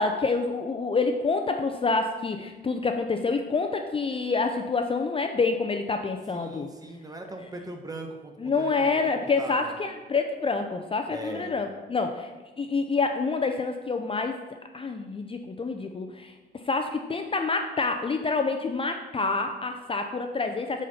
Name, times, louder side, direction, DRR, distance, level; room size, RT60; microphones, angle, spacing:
voice 1, 0.0-6.7 8.4-14.4 14.7-20.9, left 4 dB, 25° left, 6 dB, 0.5 m, -27 dB
voice 2, 6.3-9.8 11.1-11.5, right 2 dB, 20° right, 3 dB, 1.2 m, -40 dB
8.1 x 4.3 x 5.5 m, 1.3 s
cardioid pair, 90°, 20 cm